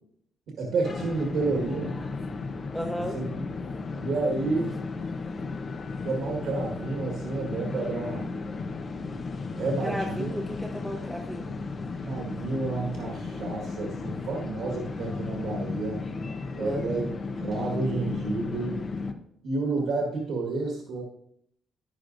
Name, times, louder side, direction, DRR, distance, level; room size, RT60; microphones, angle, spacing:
voice 1, 0.6-2.0 2.9-3.2 4.0-4.8 6.0-8.3 9.5-10.3 12.0-16.0 16.6-17.1 17.4-18.8 19.4-21.0, right 3 dB, 75° right, -1 dB, 1.7 m, -30 dB
sound 1, 0.8-19.1, left 4 dB, 45° left, 0.9 m, -34 dB
voice 2, 2.7-3.2 3.7-3.9 5.2-5.3 9.8-11.7 16.6-17.1, equal, ahead, 1 dB, 1.0 m, -35 dB
11.0 x 9.9 x 2.6 m, 0.73 s
cardioid pair, 90°, 0 cm